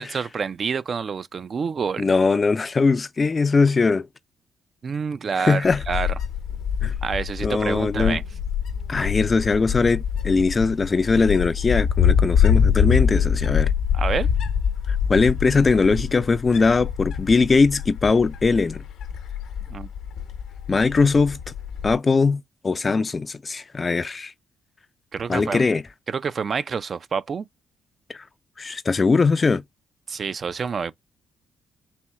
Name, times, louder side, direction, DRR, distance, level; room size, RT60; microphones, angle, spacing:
voice 1, 0.0-2.1 4.8-6.1 7.0-8.2 13.9-14.3 19.7-19.9 25.1-25.6 26.1-27.5 30.1-30.9, right 6 dB, 45° right, 0.4 m, -28 dB
voice 2, 2.0-4.1 5.4-5.8 6.8-6.9 7.4-8.2 8.9-13.7 14.9-18.8 20.7-21.4 21.8-24.3 25.3-25.8 28.1-28.2 28.6-29.6, left 4 dB, 30° left, 0.3 m, -20 dB
Wind, 5.6-21.9, left 7 dB, 80° left, 0.8 m, -24 dB
4.2 x 2.1 x 4.6 m
cardioid pair, 90°, 0 cm